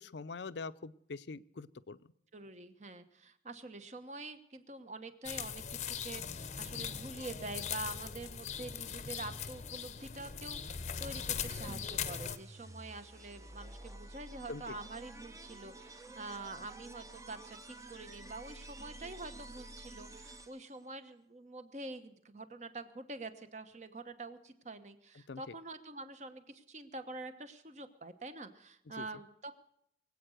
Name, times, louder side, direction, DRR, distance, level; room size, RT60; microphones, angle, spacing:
voice 1, 0.0-2.0 14.5-14.7 25.3-25.5 29.0-29.1, left 4 dB, 80° left, 15 dB, 0.6 m, -44 dB
voice 2, 2.3-29.5, right 2 dB, 40° right, 10 dB, 1.1 m, -46 dB
sound 1, 5.2-12.4, left 7 dB, 40° left, 0.7 m, -40 dB
sound 2, 11.7-20.8, right 2 dB, 20° right, 0.7 m, -51 dB
22.5 x 8.5 x 6.5 m, 0.75 s
head